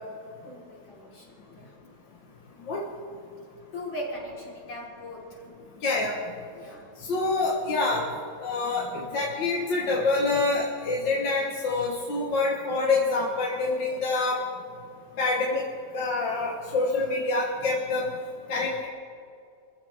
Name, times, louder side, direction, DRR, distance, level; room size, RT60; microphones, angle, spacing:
voice 1, 0.4-1.7 3.7-5.5 6.5-6.9, left 1 dB, 85° left, -6 dB, 5.2 m, -39 dB
voice 2, 5.8-6.2 7.1-8.1 8.4-14.4 15.2-15.6 15.9-18.1 18.5-18.9, left 3 dB, 70° left, -3 dB, 2.2 m, -26 dB
25.5 x 15.0 x 3.6 m, 2.3 s
omnidirectional pair, 2.1 m